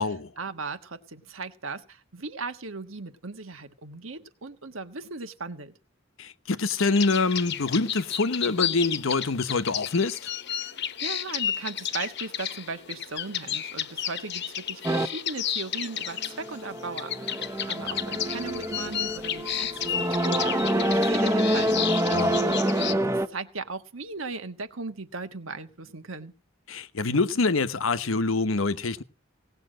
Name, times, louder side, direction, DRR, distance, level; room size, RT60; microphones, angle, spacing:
voice 1, 0.0-5.8 10.7-26.3, right 3 dB, 85° right, 1.4 m, -38 dB
voice 2, 6.2-10.3 22.1-22.4 26.7-29.0, left 3 dB, 90° left, 0.9 m, -25 dB
sound 1, 6.8-22.9, left 9 dB, 60° left, 1.0 m, -32 dB
sound 2, 14.8-15.1 16.2-23.3, right 1 dB, 15° right, 0.9 m, -26 dB
18.0 x 7.0 x 7.7 m
head